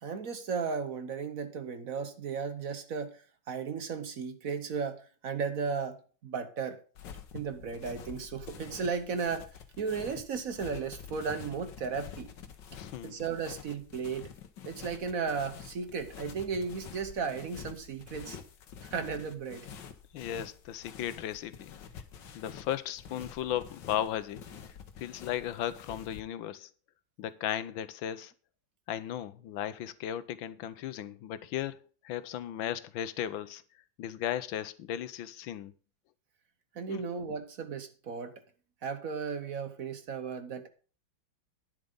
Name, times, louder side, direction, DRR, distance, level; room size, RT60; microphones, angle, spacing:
voice 1, 0.0-6.8 7.3-9.5 9.8-12.3 13.0-14.3 14.6-18.4 18.8-19.7 36.7-38.3 38.8-40.7, right 5 dB, 55° right, 1.2 m, -35 dB
sound 1, 6.9-26.2, left 7 dB, 70° left, 1.7 m, -48 dB
voice 2, 12.7-13.2 20.1-21.7 22.3-24.4 25.0-26.7 27.2-28.3 28.9-33.6 34.0-35.7 36.9-37.1, left 11 dB, 90° left, 1.5 m, -36 dB
10.0 x 7.5 x 5.3 m
omnidirectional pair, 2.1 m